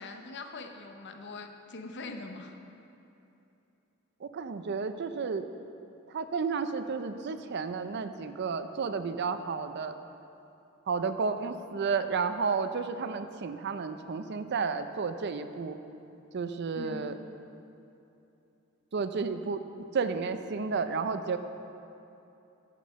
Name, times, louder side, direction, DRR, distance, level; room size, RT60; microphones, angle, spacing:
voice 1, 0.0-2.6 16.7-17.2, left 3 dB, 60° left, 5 dB, 0.8 m, -42 dB
voice 2, 4.2-5.4 6.1-10.0 10.9-15.8 16.3-17.1 18.9-21.4, right 5 dB, 55° right, 10 dB, 0.5 m, -32 dB
10.0 x 7.6 x 5.1 m, 2.9 s
head